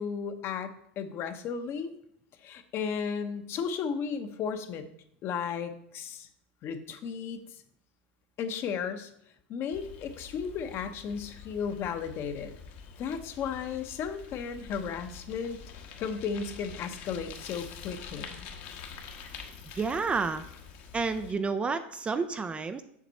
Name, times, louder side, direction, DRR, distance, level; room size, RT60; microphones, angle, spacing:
voice 1, 0.0-1.9 2.4-4.9 5.2-6.3 6.6-7.4 8.4-9.1 9.5-12.5 13.0-15.6 16.0-18.5, left 6 dB, 40° left, 8 dB, 0.9 m, -34 dB
Bicycle, 9.7-21.3, left 6 dB, 55° left, 1.2 m, -46 dB
voice 2, 19.8-20.4 20.9-22.8, right 4 dB, 20° right, 10 dB, 0.4 m, -30 dB
7.3 x 6.0 x 4.1 m, 0.73 s
supercardioid pair, 120°, 6 cm